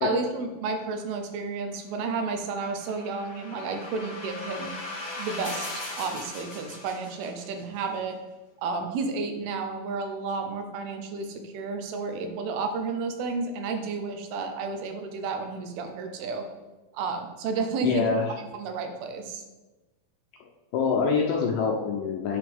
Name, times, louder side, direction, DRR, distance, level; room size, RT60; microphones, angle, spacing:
voice 1, 0.0-4.8 5.2-8.2 8.6-16.5 16.9-18.1 18.5-19.4, right 4 dB, 80° right, 6 dB, 2.7 m, -31 dB
sound 1, 2.3-7.6, left 2 dB, 60° left, 1.0 m, -39 dB
voice 2, 17.8-18.3 20.4-22.4, left 5 dB, 75° left, 0 dB, 2.0 m, -25 dB
8.7 x 6.5 x 3.5 m, 1.1 s
omnidirectional pair, 4.5 m